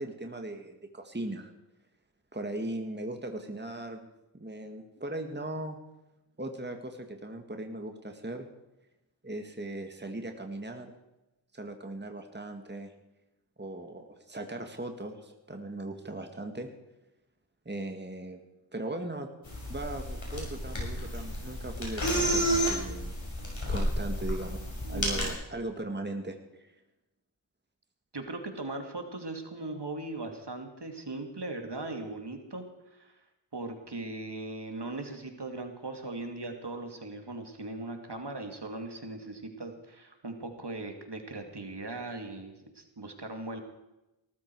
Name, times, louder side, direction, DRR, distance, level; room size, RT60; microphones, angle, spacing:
voice 1, 0.0-1.5 2.3-4.1 4.3-5.8 6.4-8.5 9.2-10.9 11.5-12.9 13.6-16.7 17.7-18.4 18.7-19.3 19.7-23.2 23.7-26.7, right 2 dB, 20° right, 5 dB, 1.9 m, -38 dB
sound 1, 19.5-25.3, equal, 70° left, 5.9 m, -31 dB
voice 2, 24.8-25.3 28.1-33.2 33.5-43.6, right 2 dB, 60° right, 5 dB, 2.6 m, -39 dB
19.0 x 14.0 x 4.7 m, 0.96 s
wide cardioid pair, 50°, 47 cm